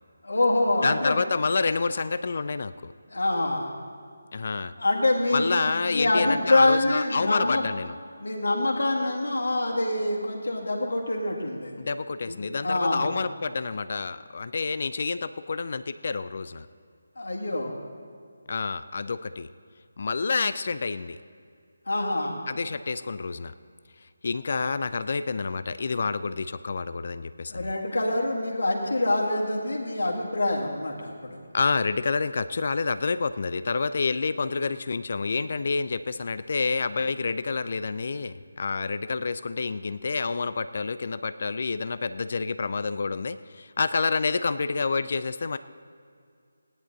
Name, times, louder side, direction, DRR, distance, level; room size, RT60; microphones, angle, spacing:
voice 1, 0.2-1.2 3.1-3.7 4.8-7.7 8.2-11.8 12.3-13.1 17.2-17.8 21.9-22.4 27.5-31.4, left 2 dB, 70° left, -1 dB, 2.0 m, -25 dB
voice 2, 0.8-2.9 4.3-4.7 5.3-8.0 11.8-16.7 18.5-19.5 20.0-21.2 22.5-23.5 24.2-27.7 31.5-45.6, left 4 dB, 50° left, 13 dB, 0.4 m, -28 dB
16.0 x 10.0 x 4.0 m, 2.3 s
figure-of-eight pair, 155°, 0 cm